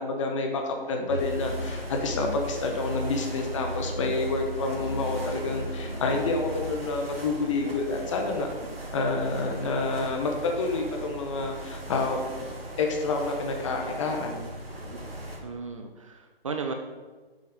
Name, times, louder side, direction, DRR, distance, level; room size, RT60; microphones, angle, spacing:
voice 1, 0.0-8.5 8.9-12.2 12.8-14.4, left 3 dB, 30° left, 3 dB, 1.1 m, -28 dB
Musical instrument, 1.1-6.8, equal, 75° left, 2.3 m, -35 dB
sound 1, 1.2-15.4, right 1 dB, 70° right, 2.2 m, -39 dB
voice 2, 15.4-16.7, right 5 dB, 35° right, 5 dB, 0.6 m, -35 dB
7.6 x 5.4 x 5.3 m, 1.3 s
figure-of-eight pair, 135°, 31 cm